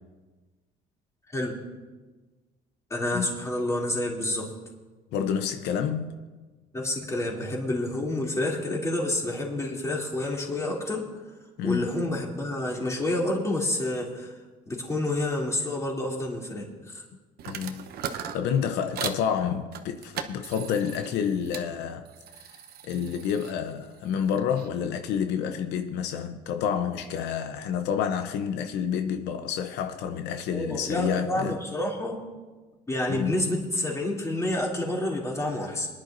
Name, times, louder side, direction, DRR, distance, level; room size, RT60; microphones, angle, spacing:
voice 1, 2.9-4.5 6.7-11.1 11.6-14.4 14.6-17.0 30.5-32.2 32.9-35.9, left 1 dB, 15° left, 2.9 m, -29 dB
voice 2, 5.1-6.2 11.6-11.9 17.4-17.9 18.3-22.0 22.4-22.5 22.8-31.6 33.1-33.4, left 7 dB, 85° left, 0.7 m, -29 dB
sound 1, 17.4-19.2 19.7-21.7 22.0-24.7, right 8 dB, 70° right, 0.9 m, -39 dB
22.5 x 10.5 x 2.6 m
cardioid pair, 110°, 17 cm